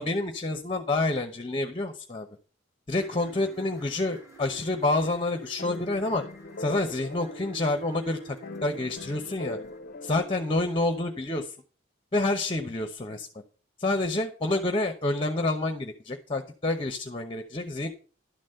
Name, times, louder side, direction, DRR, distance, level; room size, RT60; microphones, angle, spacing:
voice 1, 0.0-2.3 2.9-6.2 6.6-9.6 10.0-11.5 12.1-13.3 13.8-17.9, left 2 dB, 25° left, 6 dB, 0.9 m, -28 dB
sound 1, 3.0-9.8, right 5 dB, 15° right, 2.4 m, -49 dB
sound 2, 5.6-11.3, left 2 dB, 50° left, 0.5 m, -42 dB
12.0 x 4.1 x 7.7 m, 0.40 s
head